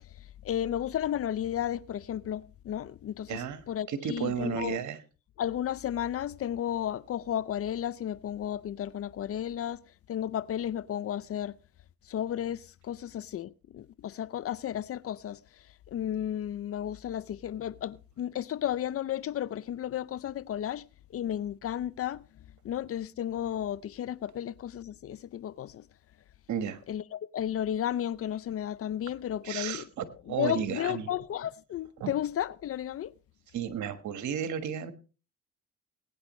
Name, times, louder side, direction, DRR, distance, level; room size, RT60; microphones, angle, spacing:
voice 1, 0.4-4.8 5.4-9.8 10.1-11.6 12.1-15.4 15.9-20.9 21.1-22.2 22.6-25.8 26.9-29.9 30.3-33.1, left 10 dB, 50° left, 0.5 m, -33 dB
voice 2, 3.3-3.6 3.9-5.0 26.5-26.8 29.4-31.1 32.0-32.1 33.5-34.9, right 8 dB, 70° right, 1.5 m, -33 dB
20.5 x 9.5 x 3.1 m
cardioid pair, 80°, 31 cm